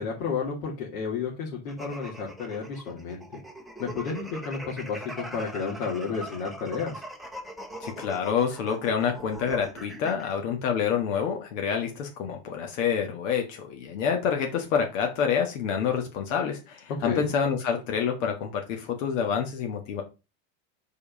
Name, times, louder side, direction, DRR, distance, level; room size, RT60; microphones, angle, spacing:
voice 1, 0.0-3.4 3.8-7.0 17.0-17.3, left 5 dB, 90° left, -3 dB, 2.6 m, -32 dB
sound 1, 1.7-10.3, right 1 dB, ahead, 0.8 m, -41 dB
voice 2, 7.8-20.0, left 7 dB, 65° left, 3 dB, 1.6 m, -27 dB
5.3 x 4.8 x 5.3 m, 0.29 s
supercardioid pair, 165°, 41 cm